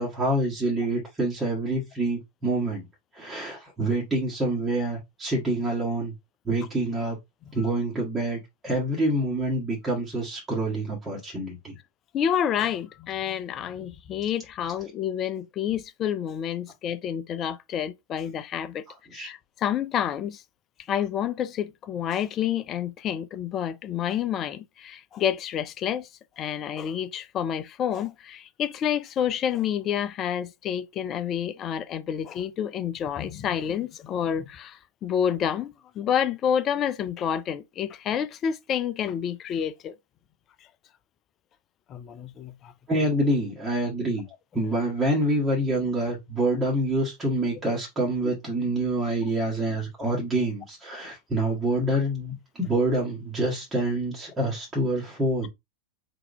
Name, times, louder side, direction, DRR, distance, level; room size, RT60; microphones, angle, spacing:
voice 1, 0.0-2.8 3.1-6.1 6.4-7.2 7.5-11.8 19.1-19.3 42.9-44.3 44.5-55.5, right 1 dB, 10° right, 1.6 m, -26 dB
voice 2, 12.1-18.8 19.1-20.4 20.9-26.1 26.4-39.9 41.9-42.7 48.2-48.3, left 9 dB, 30° left, 0.5 m, -29 dB
3.8 x 2.8 x 3.5 m
figure-of-eight pair, 90°, 0 cm